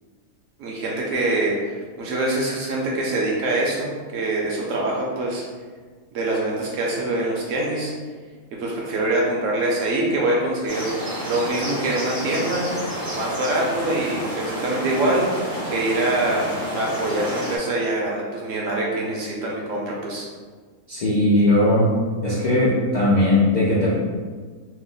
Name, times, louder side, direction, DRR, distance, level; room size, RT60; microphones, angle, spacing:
voice 1, 0.6-5.4 6.1-7.9 8.6-10.9 11.3-12.7 13.1-15.3 15.7-20.3, right 2 dB, 65° right, -3 dB, 0.9 m, -24 dB
sound 1, 10.7-17.6, equal, 30° right, 0.4 m, -30 dB
voice 2, 20.9-21.9 22.2-23.9, left 1 dB, 70° left, -8 dB, 0.4 m, -18 dB
3.0 x 2.0 x 3.7 m, 1.5 s
omnidirectional pair, 1.6 m